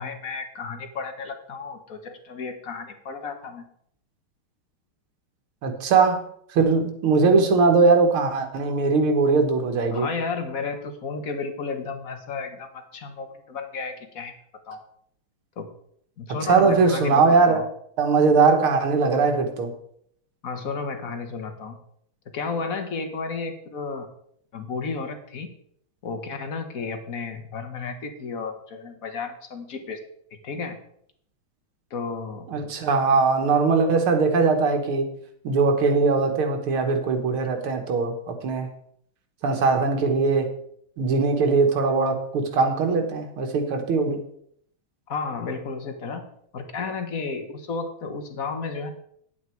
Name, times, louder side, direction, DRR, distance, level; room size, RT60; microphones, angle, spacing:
voice 1, 0.0-3.6 9.9-14.3 14.7-14.8 15.6-15.7 16.2-17.6 20.4-21.8 22.3-24.1 24.5-25.5 26.0-30.0 30.4-30.8 31.9-32.5 45.1-48.9, left 4 dB, 45° left, 7 dB, 1.5 m, -32 dB
voice 2, 5.6-6.2 6.5-10.1 16.5-17.6 18.0-19.7 32.5-35.1 35.4-38.7 39.4-40.5 41.0-44.2, right 4 dB, 90° right, 5 dB, 2.3 m, -20 dB
10.0 x 8.2 x 4.6 m, 0.67 s
omnidirectional pair, 2.3 m